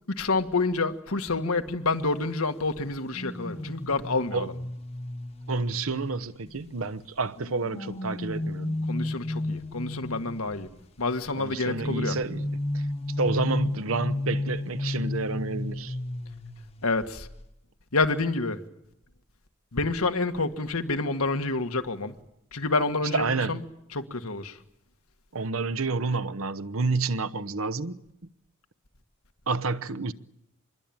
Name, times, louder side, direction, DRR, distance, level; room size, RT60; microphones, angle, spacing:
voice 1, 0.1-4.5 8.9-10.7 11.0-12.2 16.8-17.3 17.9-18.6 19.7-22.2 22.5-23.6 23.9-24.6, left 3 dB, 85° left, 1.8 m, -28 dB
sound 1, 3.1-6.7 7.4-10.6 11.6-16.9 17.1-17.4, left 1 dB, 30° left, 1.1 m, -33 dB
voice 2, 5.5-8.8 11.4-12.4 12.7-12.9 13.2-16.0 23.1-23.6 25.3-28.0 29.5-30.1, right 3 dB, 75° right, 1.0 m, -29 dB
26.0 x 21.5 x 8.9 m
head